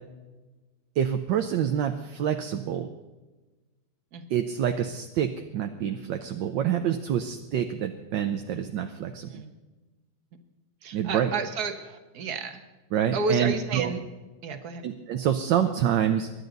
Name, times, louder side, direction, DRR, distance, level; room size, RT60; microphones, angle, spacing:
voice 1, 1.0-2.9 4.3-9.4 10.9-11.3 12.9-13.9 14.8-16.3, right 9 dB, 70° right, 6 dB, 1.4 m, -27 dB
voice 2, 10.8-12.6 13.1-14.0 14.4-14.8, right 4 dB, 55° right, 7 dB, 1.7 m, -31 dB
24.0 x 11.0 x 4.0 m, 1.2 s
omnidirectional pair, 2.2 m